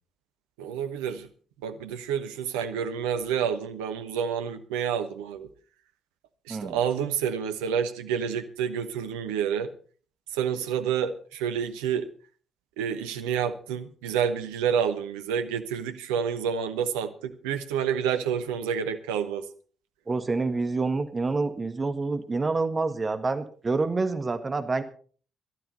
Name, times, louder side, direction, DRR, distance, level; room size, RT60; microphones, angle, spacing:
voice 1, 0.6-1.3 1.6-5.5 6.5-9.7 10.3-12.1 12.8-19.4, right 8 dB, 75° right, 9 dB, 1.0 m, -29 dB
voice 2, 20.1-24.8, right 3 dB, 30° right, 9 dB, 1.6 m, -27 dB
18.0 x 12.5 x 4.2 m, 0.43 s
figure-of-eight pair, 40°, 0 cm